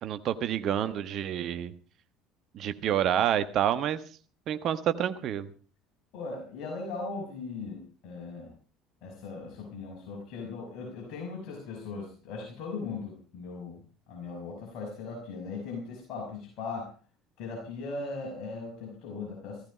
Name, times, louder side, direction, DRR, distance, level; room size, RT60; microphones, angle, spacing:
voice 1, 0.0-1.7 2.5-4.0 4.5-5.5, right 10 dB, 50° right, 11 dB, 1.4 m, -28 dB
voice 2, 6.1-8.5 9.0-13.8 14.1-16.9 17.4-19.6, left 4 dB, 55° left, 0 dB, 5.7 m, -38 dB
16.5 x 14.5 x 5.1 m, 0.39 s
figure-of-eight pair, 60°, 0 cm